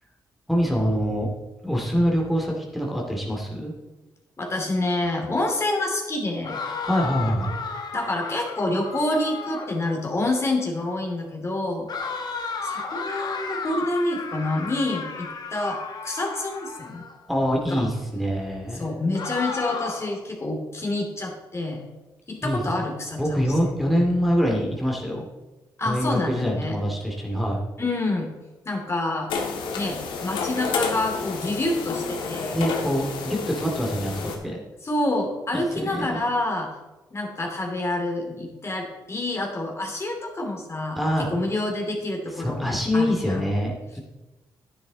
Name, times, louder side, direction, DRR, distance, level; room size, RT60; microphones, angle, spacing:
voice 1, 0.5-1.3 1.6-3.7 6.8-7.6 17.3-18.9 22.4-22.6 23.2-25.2 25.9-27.6 32.5-34.6 35.5-36.2 41.0-41.3 42.4-44.0, equal, ahead, -2 dB, 2.4 m, -25 dB
voice 2, 4.4-6.6 7.9-11.9 12.6-17.0 17.7-17.9 18.7-21.8 22.3-23.5 25.8-26.8 27.8-28.3 28.6-29.3 29.7-32.6 34.8-36.7 37.1-43.4, left 2 dB, 35° left, 1 dB, 2.7 m, -27 dB
sound 1, 6.4-9.8 11.9-17.2 19.1-20.2, left 4 dB, 60° left, 1.6 m, -33 dB
sound 2, 29.3-34.4, left 4 dB, 80° left, 1.6 m, -30 dB
10.0 x 9.8 x 4.0 m, 1.1 s
supercardioid pair, 65°, 8 cm